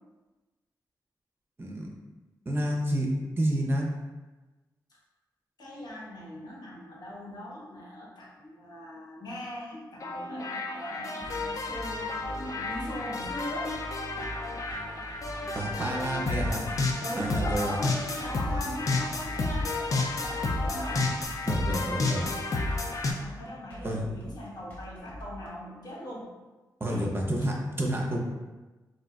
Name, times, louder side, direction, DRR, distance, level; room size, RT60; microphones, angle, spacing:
voice 1, 2.5-3.1 3.4-3.9 15.6-16.6 17.2-17.8 20.9-21.1 21.5-22.3 23.8-24.0 26.8-28.3, right 1 dB, 30° right, -1 dB, 0.5 m, -29 dB
voice 2, 5.6-13.7 17.0-21.1 22.1-22.4 23.0-26.3 26.8-27.1, left 1 dB, 65° left, -5 dB, 0.9 m, -40 dB
sound 1, 10.0-23.1, left 3 dB, 45° left, 0.4 m, -31 dB
sound 2, 11.2-25.5, equal, 20° left, 0.8 m, -46 dB
sound 3, 11.3-21.3, right 1 dB, 80° right, 0.4 m, -46 dB
3.8 x 2.5 x 2.3 m, 1.2 s
wide cardioid pair, 105°, 7 cm